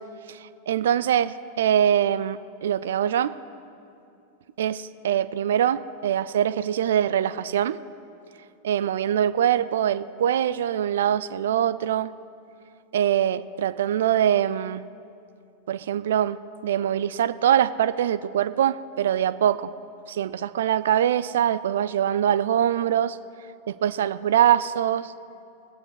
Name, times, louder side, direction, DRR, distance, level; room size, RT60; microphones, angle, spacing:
voice 1, 0.3-3.4 4.6-7.8 8.6-12.1 12.9-14.8 15.7-16.4 16.6-19.7 20.1-23.2 23.7-25.1, right 10 dB, 60° right, 15 dB, 0.3 m, -23 dB
20.0 x 8.5 x 4.7 m, 2.6 s
figure-of-eight pair, 90°, 0 cm